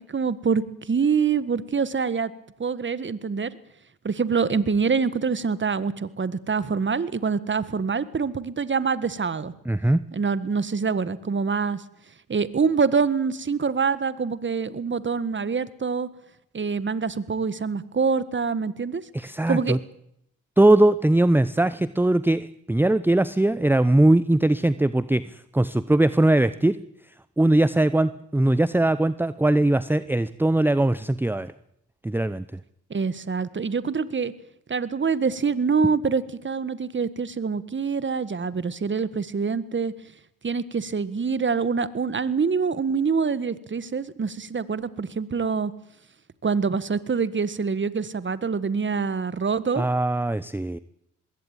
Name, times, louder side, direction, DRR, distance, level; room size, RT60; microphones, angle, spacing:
voice 1, 0.0-2.3 2.6-3.5 4.0-9.5 10.1-11.8 12.3-16.1 16.5-19.0 19.5-19.8 32.9-34.3 34.7-39.9 40.4-45.7 46.4-49.8, right 5 dB, 35° right, 16 dB, 1.7 m, -25 dB
voice 2, 9.7-10.0 19.1-19.8 20.6-26.8 27.4-31.5 32.0-32.6 49.8-50.8, right 1 dB, 5° right, 16 dB, 0.8 m, -20 dB
21.0 x 17.0 x 9.1 m, 0.79 s
supercardioid pair, 60°, 35 cm